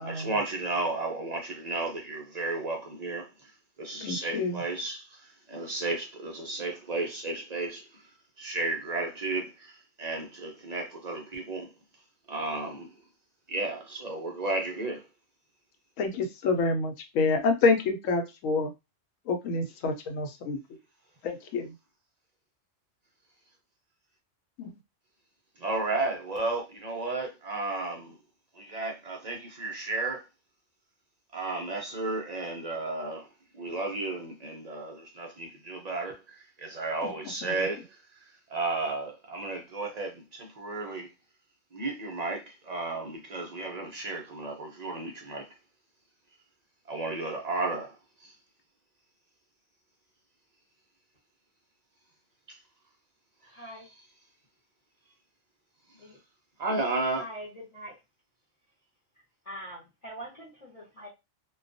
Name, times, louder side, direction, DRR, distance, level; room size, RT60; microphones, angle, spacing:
voice 1, 0.0-3.5 3.8-8.0 8.4-11.7 12.3-12.9 13.5-15.0 25.6-28.2 28.5-30.2 31.3-33.3 33.5-37.9 38.5-41.1 41.7-45.5 46.9-47.9 48.2-48.3 52.5-52.6 56.6-57.2, right 3 dB, 65° right, 0.4 m, -33 dB
voice 2, 4.0-4.6 16.0-18.7 19.3-20.6 21.2-21.7 24.6-24.8 37.4-37.6, left 3 dB, 80° left, 1.0 m, -27 dB
voice 3, 53.4-53.9 56.0-56.2 57.1-58.0 59.4-61.1, equal, 35° left, 0.7 m, -43 dB
2.2 x 2.2 x 2.5 m
omnidirectional pair, 1.3 m